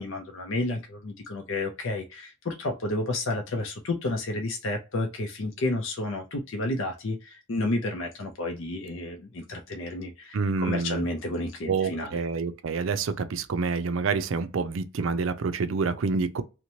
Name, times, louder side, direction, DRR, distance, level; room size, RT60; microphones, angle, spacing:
voice 1, 0.0-12.2, left 2 dB, 65° left, 0.5 m, -31 dB
voice 2, 10.3-11.1 11.7-16.4, right 4 dB, 70° right, 0.4 m, -27 dB
2.9 x 2.1 x 2.6 m
head